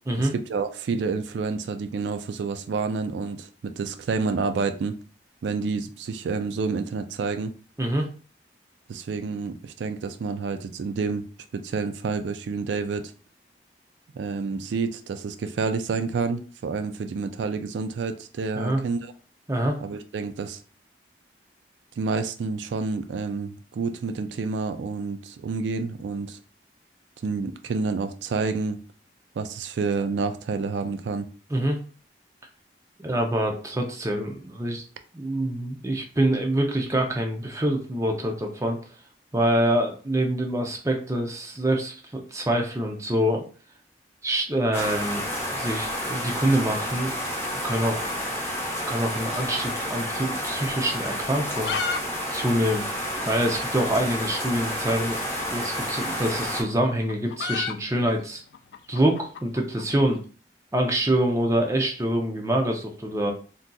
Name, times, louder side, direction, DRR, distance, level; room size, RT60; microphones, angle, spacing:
voice 1, 0.2-5.0 5.4-7.5 8.9-11.3 11.5-13.1 14.1-19.1 19.8-20.6 22.0-26.4 27.2-28.8 29.4-31.3, right 4 dB, 90° right, 9 dB, 0.3 m, -29 dB
voice 2, 19.5-19.8 31.5-31.8 33.0-34.8 35.1-38.8 39.3-43.4 44.2-45.2 45.5-47.1 47.6-48.0 48.9-51.7 52.3-52.9 53.3-58.4 58.9-60.2 60.7-63.3, right 1 dB, 15° right, 2 dB, 0.5 m, -25 dB
sound 1, 44.7-56.6, equal, 15° left, 0.9 m, -30 dB
sound 2, 49.1-50.4 50.6-50.7 51.3-52.0 52.3-52.4 52.6-52.7 53.3-53.4 54.6-54.8 55.9-60.1, left 5 dB, 70° left, 0.3 m, -33 dB
3.6 x 2.6 x 2.3 m, 0.39 s
head